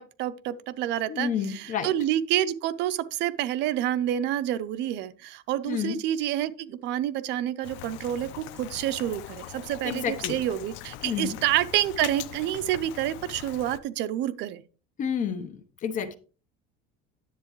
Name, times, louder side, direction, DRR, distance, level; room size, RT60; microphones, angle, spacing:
voice 1, 0.0-14.6, right 12 dB, 55° right, 0.7 m, -28 dB
voice 2, 1.1-1.9 5.6-6.0 9.8-10.4 11.0-11.4 15.0-16.2, left 7 dB, 35° left, 0.9 m, -30 dB
Rain, 7.6-13.8, left 14 dB, 65° left, 0.6 m, -41 dB
10.0 x 7.9 x 3.1 m
cardioid pair, 140°, 21 cm